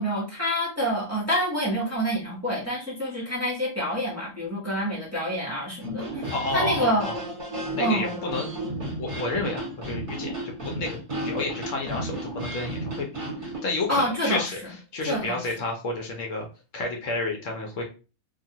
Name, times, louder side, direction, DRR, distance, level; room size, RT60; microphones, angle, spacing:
voice 1, 0.0-7.1 7.8-8.2 13.9-14.4 15.1-15.5, equal, 15° right, -7 dB, 0.9 m, -27 dB
sound 1, 5.8-13.6, right 1 dB, 35° right, 1.5 m, -33 dB
voice 2, 6.3-7.1 7.7-8.5 9.0-13.1 13.4-16.4 16.7-17.8, left 3 dB, 65° left, 1 dB, 0.9 m, -30 dB
2.6 x 2.4 x 2.7 m, 0.33 s
omnidirectional pair, 1.5 m